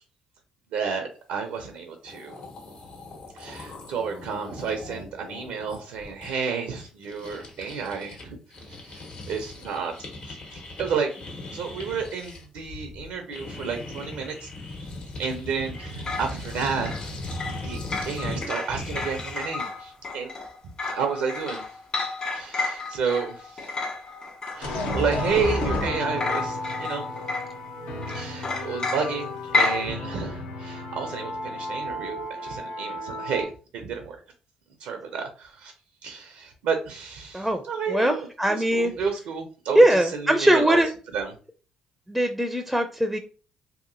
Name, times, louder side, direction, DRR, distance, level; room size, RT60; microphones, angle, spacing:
voice 1, 0.7-2.4 3.3-8.4 8.7-9.9 10.2-11.1 11.5-14.5 15.2-17.2 17.4-17.8 18.1-20.3 20.9-21.7 22.3-23.7 24.5-27.1 28.1-34.2 34.8-35.7 36.0-38.2 38.5-40.8 41.1-41.3, right 5 dB, 80° right, 4 dB, 0.5 m, -31 dB
sound 1, 1.8-1.9 2.0-8.2 8.5-19.6, left 2 dB, 65° left, 1.3 m, -39 dB
sound 2, 15.7-25.9 26.2-27.7 28.0-29.9, left 3 dB, 45° left, 1.4 m, -31 dB
sound 3, 24.6-33.4, left 1 dB, 80° left, 0.7 m, -32 dB
voice 2, 37.9-38.9 39.8-40.9 42.1-43.2, right 1 dB, ahead, 6 dB, 0.4 m, -21 dB
2.8 x 2.6 x 2.6 m, 0.38 s
supercardioid pair, 60°, 2 cm